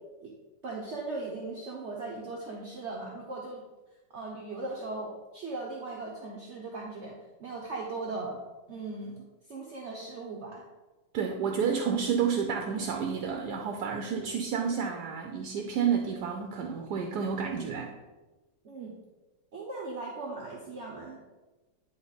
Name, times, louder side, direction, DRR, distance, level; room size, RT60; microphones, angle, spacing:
voice 1, 0.6-3.6 4.1-8.4 8.7-10.7 14.1-14.3 18.6-18.9 19.5-21.2, right 3 dB, 50° right, -2 dB, 1.0 m, -38 dB
voice 2, 11.1-17.9, right 6 dB, 75° right, 3 dB, 1.2 m, -30 dB
10.0 x 3.5 x 4.0 m, 1.2 s
omnidirectional pair, 1.8 m